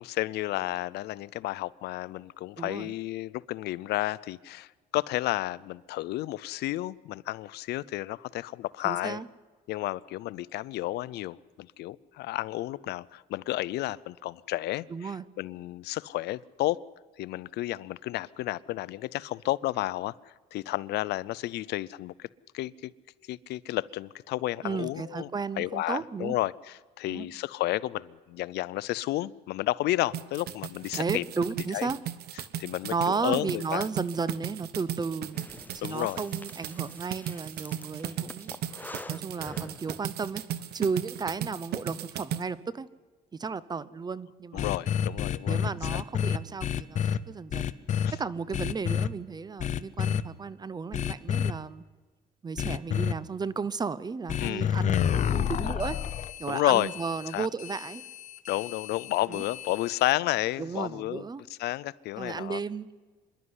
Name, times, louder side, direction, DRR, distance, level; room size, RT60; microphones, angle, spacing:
voice 1, 0.0-9.2 9.7-15.1 15.4-16.8 17.2-20.1 20.5-22.3 22.5-22.9 23.3-25.3 25.6-31.2 31.7-31.9 32.6-32.9 33.2-33.9 35.8-36.2 44.5-45.6 45.9-46.0 54.4-54.7 56.5-56.9 57.3-57.5 58.5-61.2 61.6-62.6, left 17 dB, 75° left, 20 dB, 0.5 m, -31 dB
voice 2, 2.6-2.9 8.8-9.3 14.9-15.2 24.6-26.4 27.1-27.3 30.9-32.0 32.9-35.4 35.7-38.5 39.1-40.4 40.7-42.9 43.3-44.7 45.4-47.7 48.2-51.8 52.4-56.0 56.4-58.0 59.3-59.4 60.6-61.4 62.2-62.9, right 5 dB, 25° right, 18 dB, 0.7 m, -34 dB
sound 1, 30.1-42.4, right 10 dB, 70° right, 1.1 m, -36 dB
Breathing, 35.3-40.3, left 2 dB, 10° left, 0.7 m, -47 dB
sound 2, 44.6-47.2 47.5-48.1 48.5-49.1 49.6-50.2 50.9-51.5 52.6-53.1 54.3-60.1, left 9 dB, 45° left, 0.8 m, -29 dB
25.0 x 11.5 x 9.7 m, 1.4 s
cardioid pair, 110°, 17 cm